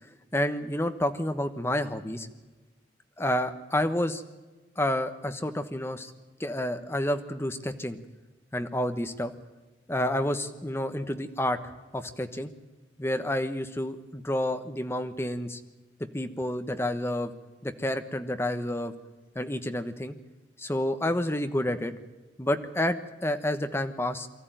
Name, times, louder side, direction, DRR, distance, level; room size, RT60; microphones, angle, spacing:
voice 1, 0.3-2.3 3.2-4.2 4.8-6.1 6.4-8.0 8.5-9.3 9.9-11.6 11.9-12.5 13.0-15.6 16.1-17.3 17.6-18.9 19.3-20.2 20.6-21.9 22.4-24.3, left 1 dB, 15° left, 8 dB, 1.2 m, -29 dB
24.0 x 14.0 x 9.1 m, 1.2 s
head